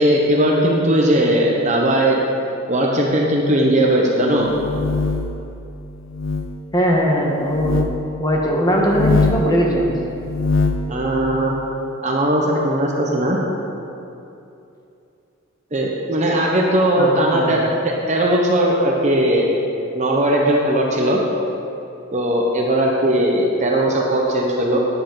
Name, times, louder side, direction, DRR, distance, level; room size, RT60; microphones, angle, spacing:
voice 1, 0.0-2.2 2.7-4.5 10.9-11.6 12.0-13.4 15.7-19.4 19.9-21.2 22.1-24.8, right 1 dB, 35° right, -1 dB, 1.0 m, -18 dB
sound 1, 4.4-5.4 6.1-6.5 7.5-7.9 8.8-9.5 10.2-10.9, left 4 dB, 60° left, 0.7 m, -21 dB
voice 2, 6.7-7.8 8.2-10.0 17.0-17.6, equal, 20° left, -1 dB, 1.3 m, -19 dB
11.0 x 10.0 x 4.0 m, 2.7 s
head